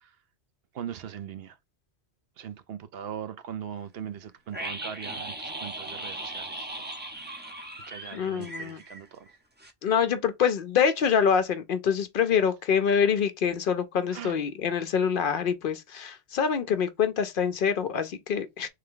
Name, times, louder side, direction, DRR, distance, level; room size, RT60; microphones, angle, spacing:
voice 1, 0.7-1.5 2.4-6.9 7.9-9.2 14.1-14.3, right 9 dB, 70° right, 0.8 m, -40 dB
sound 1, 4.5-9.3 9.6-9.7, right 1 dB, 15° right, 0.5 m, -38 dB
voice 2, 8.1-8.8 9.8-18.7, left 7 dB, 60° left, 0.6 m, -25 dB
3.3 x 3.3 x 3.6 m
omnidirectional pair, 1.1 m